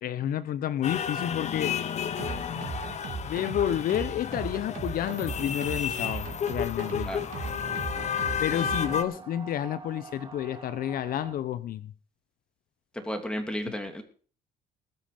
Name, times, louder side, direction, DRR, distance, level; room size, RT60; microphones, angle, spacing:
voice 1, 0.0-1.8 3.2-7.1 8.4-11.9, left 11 dB, 60° left, 0.8 m, -30 dB
sound 1, 0.8-9.0, left 8 dB, 45° left, 1.3 m, -32 dB
sound 2, 2.2-9.0, right 4 dB, 50° right, 3.0 m, -37 dB
sound 3, 7.8-11.4, right 4 dB, 30° right, 3.2 m, -46 dB
voice 2, 12.9-14.0, equal, 5° left, 2.8 m, -33 dB
20.0 x 7.6 x 5.1 m
cardioid pair, 110°, 17 cm